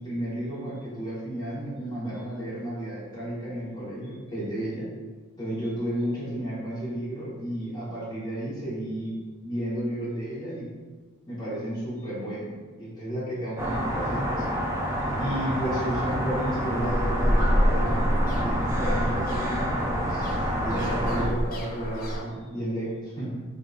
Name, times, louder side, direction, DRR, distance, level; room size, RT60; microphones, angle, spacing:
voice 1, 0.0-4.9 5.4-9.1 9.4-10.7 11.3-14.5 15.2-20.3 20.6-23.4, right 1 dB, 20° left, -9 dB, 1.2 m, -32 dB
sound 1, 13.6-21.3, equal, 15° right, 0.4 m, -28 dB
sound 2, 16.8-22.2, equal, 45° left, 0.5 m, -27 dB
3.7 x 2.6 x 2.4 m, 1.4 s
head